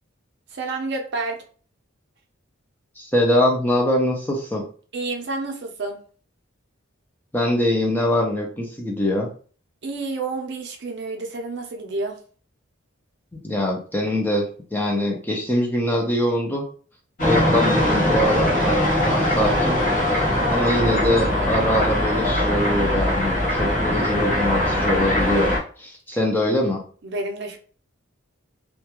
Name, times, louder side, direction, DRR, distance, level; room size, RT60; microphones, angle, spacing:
voice 1, 0.5-1.4 4.9-6.0 9.8-12.2 27.0-27.6, right 3 dB, 55° right, 3 dB, 0.5 m, -29 dB
voice 2, 3.0-4.6 7.3-9.3 13.4-16.6 17.2-19.8 20.1-20.3 20.5-25.5 25.8-26.8, left 1 dB, 10° left, -1 dB, 0.4 m, -23 dB
sound 1, 17.2-25.6, left 1 dB, 40° left, 0.9 m, -21 dB
2.3 x 2.2 x 2.9 m, 0.42 s
head